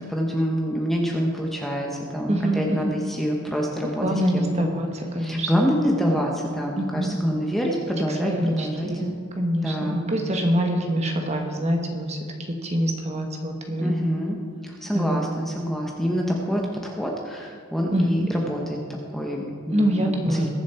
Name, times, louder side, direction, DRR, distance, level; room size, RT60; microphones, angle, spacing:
voice 1, 0.1-4.7 5.2-8.9 9.6-10.0 13.8-14.4 14.6-18.8 19.1-20.0 20.3-20.5, equal, ahead, -1 dB, 1.0 m, -26 dB
voice 2, 2.3-2.9 4.0-5.8 6.8-7.1 8.1-12.2 12.5-13.9 14.9-15.2 17.9-18.3 19.7-20.5, equal, 30° right, 3 dB, 1.4 m, -25 dB
21.5 x 7.3 x 4.4 m, 2.2 s
head